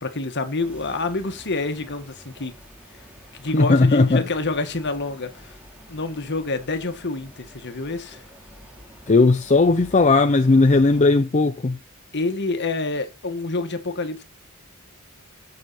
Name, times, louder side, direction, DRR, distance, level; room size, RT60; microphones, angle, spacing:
voice 1, 0.0-2.5 3.3-5.5 5.9-8.2 12.1-14.2, left 3 dB, 50° left, 1.7 m, -27 dB
sound 1, 0.6-11.1, equal, 5° right, 3.5 m, -48 dB
voice 2, 3.5-4.2 9.1-11.8, left 3 dB, 35° left, 0.6 m, -17 dB
16.0 x 6.7 x 4.2 m
head